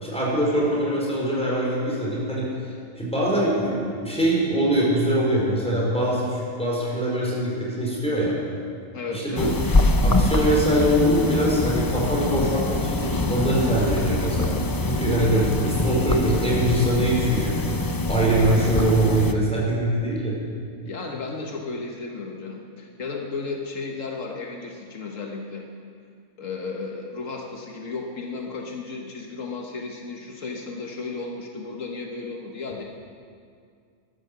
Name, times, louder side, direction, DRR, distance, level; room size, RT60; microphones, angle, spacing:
voice 1, 0.0-8.3 9.1-9.5 10.0-20.3, right 1 dB, 5° left, -5 dB, 4.5 m, -23 dB
voice 2, 8.9-9.6 20.8-25.7 26.4-32.8, left 4 dB, 75° left, 1 dB, 1.6 m, -34 dB
sound 1, 9.4-19.3, left 2 dB, 30° left, 0.4 m, -24 dB
15.0 x 12.0 x 6.7 m, 2.3 s
omnidirectional pair, 1.4 m